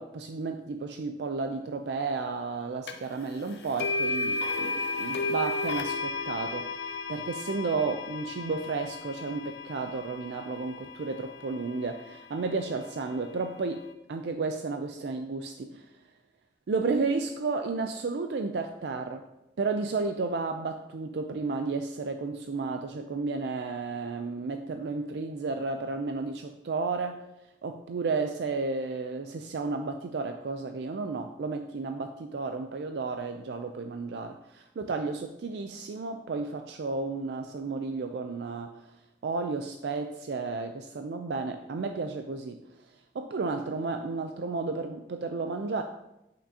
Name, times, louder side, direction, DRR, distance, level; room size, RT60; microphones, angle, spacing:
voice 1, 0.0-15.9 16.7-19.3 19.6-27.2 27.6-38.9 39.2-42.6 43.1-45.8, right 4 dB, 70° right, 6 dB, 0.4 m, -32 dB
sound 1, 2.9-3.0 3.8-11.8, left 3 dB, 70° left, 0.7 m, -33 dB
8.5 x 5.8 x 2.8 m, 0.89 s
head